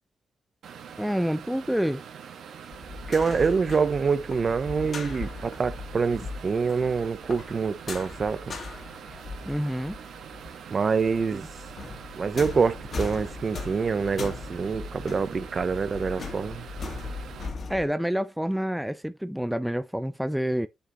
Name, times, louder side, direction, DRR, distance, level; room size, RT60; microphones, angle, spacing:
sound 1, 0.6-17.5, right 7 dB, 80° right, 1.8 m, -44 dB
voice 1, 1.0-2.0 9.5-10.0 17.7-20.7, equal, 5° right, 0.4 m, -28 dB
sound 2, 2.7-10.6 10.8-17.8, left 4 dB, 50° left, 2.1 m, -39 dB
voice 2, 3.1-8.6 10.7-11.4 12.2-16.6, right 5 dB, 45° right, 0.8 m, -26 dB
8.1 x 6.1 x 3.1 m
cardioid pair, 100°, 0 cm